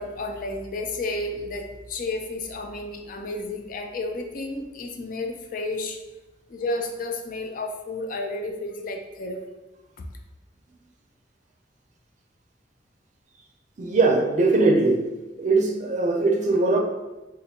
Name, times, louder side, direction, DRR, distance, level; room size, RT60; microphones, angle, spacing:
voice 1, 0.0-6.0 6.5-9.4 10.0-10.1, left 2 dB, 50° left, 4 dB, 0.4 m, -32 dB
voice 2, 13.8-15.1 15.4-16.8, right 3 dB, 45° right, 2 dB, 0.5 m, -20 dB
3.9 x 2.5 x 2.8 m, 1.1 s
head